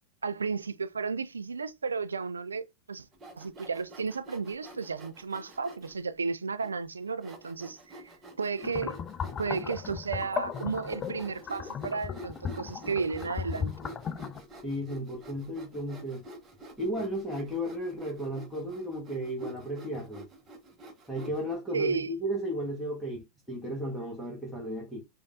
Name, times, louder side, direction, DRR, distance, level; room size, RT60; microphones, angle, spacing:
voice 1, 0.2-3.1 3.4-8.0 8.4-9.0 9.4-13.7 21.7-22.1, right 5 dB, 75° right, 0.3 m, -33 dB
Sawing, 3.1-6.0 6.6-6.7 7.2-21.6, right 2 dB, 25° right, 1.1 m, -47 dB
sound 1, 8.6-14.4, left 7 dB, 25° left, 0.3 m, -36 dB
voice 2, 14.6-16.2 16.8-20.2 21.1-25.0, equal, 5° left, 1.3 m, -34 dB
5.1 x 2.5 x 2.6 m
figure-of-eight pair, 90°, 0 cm